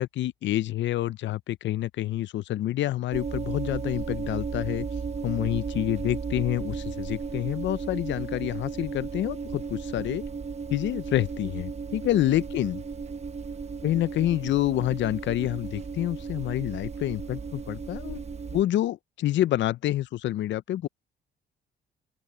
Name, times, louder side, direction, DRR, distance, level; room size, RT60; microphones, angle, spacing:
voice 1, 0.0-4.9 5.2-10.2 10.7-12.8 13.8-18.2 18.5-20.9, left 13 dB, 65° left, 0.5 m, -28 dB
sound 1, 3.1-18.6, right 5 dB, 35° right, 1.0 m, -35 dB
open air
cardioid pair, 90°, 20 cm